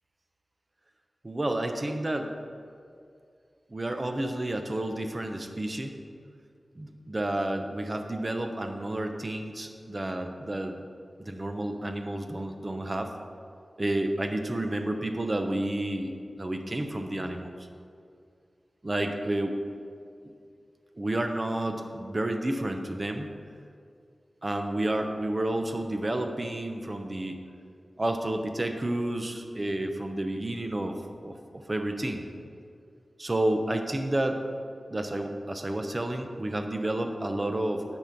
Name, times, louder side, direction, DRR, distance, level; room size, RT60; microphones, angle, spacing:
voice 1, 1.2-2.3 3.7-5.9 6.8-10.8 11.2-13.1 13.8-17.5 18.8-19.5 20.9-23.3 24.4-27.4 28.0-31.0 31.2-32.2 33.2-34.4 34.9-37.8, right 1 dB, 35° right, 5 dB, 0.8 m, -30 dB
8.8 x 6.2 x 5.8 m, 2.3 s
wide cardioid pair, 80°, 0 cm